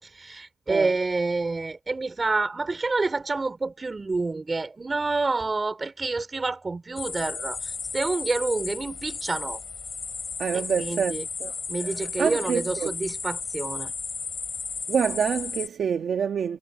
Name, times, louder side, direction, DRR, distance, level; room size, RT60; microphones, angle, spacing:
voice 1, 0.0-9.6 10.5-11.3 11.7-13.9, right 3 dB, 35° right, 4.0 m, -28 dB
sound 1, 7.0-15.7, left 5 dB, 55° left, 2.7 m, -34 dB
voice 2, 10.4-11.5 12.2-12.9 14.9-16.6, right 7 dB, 85° right, 1.3 m, -26 dB
cardioid pair, 90°, 0 cm